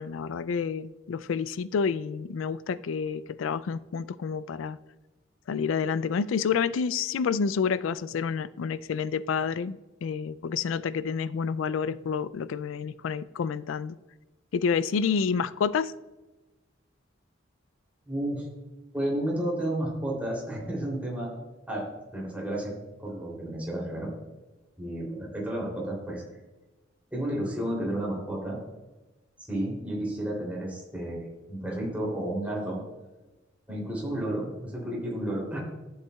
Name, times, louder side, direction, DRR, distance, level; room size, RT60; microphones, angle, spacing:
voice 1, 0.0-4.8 5.5-14.0 14.5-15.9, left 6 dB, 80° left, 17 dB, 0.4 m, -29 dB
voice 2, 18.0-18.5 18.9-21.3 21.7-21.8 22.1-22.7 23.0-24.1 24.8-26.2 27.1-28.6 29.4-32.8 33.7-35.6, right 1 dB, 10° right, -4 dB, 3.1 m, -31 dB
12.5 x 8.0 x 2.3 m, 1.1 s
head